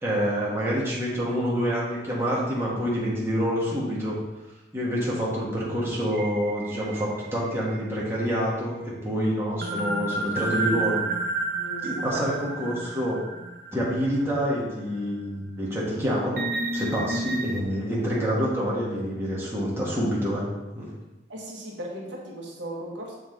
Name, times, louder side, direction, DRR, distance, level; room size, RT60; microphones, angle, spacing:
voice 1, 0.0-4.2 4.7-11.0 11.8-13.2 13.7-16.4 16.7-20.4 20.7-20.9, equal, 15° right, -6 dB, 1.7 m, -27 dB
sound 1, 6.1-8.1 9.6-14.4 14.9-15.0 16.4-17.6, right 2 dB, 50° right, 0.7 m, -31 dB
voice 2, 11.5-12.2 21.3-23.2, right 1 dB, 75° right, -2 dB, 1.4 m, -37 dB
7.1 x 5.1 x 4.0 m, 1.1 s
head